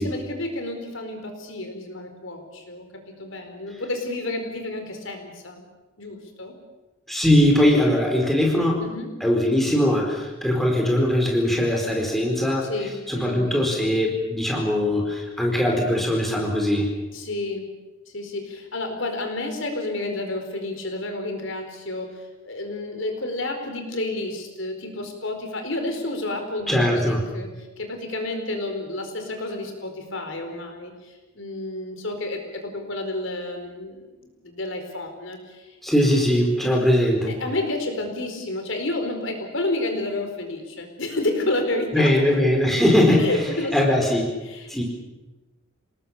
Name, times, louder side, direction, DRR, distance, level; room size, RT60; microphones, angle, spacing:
voice 1, 0.0-5.6 6.0-6.5 8.8-9.1 12.6-13.7 17.1-17.7 18.1-35.8 37.3-42.1 43.2-43.8 44.4-44.7, left 2 dB, 70° left, 5 dB, 4.7 m, -30 dB
voice 2, 7.1-8.8 9.2-12.7 13.1-16.9 26.7-27.2 35.8-37.3 41.9-43.3 43.7-44.2 44.7-44.8, left 1 dB, ahead, 0 dB, 4.5 m, -20 dB
28.0 x 19.5 x 7.3 m, 1.1 s
head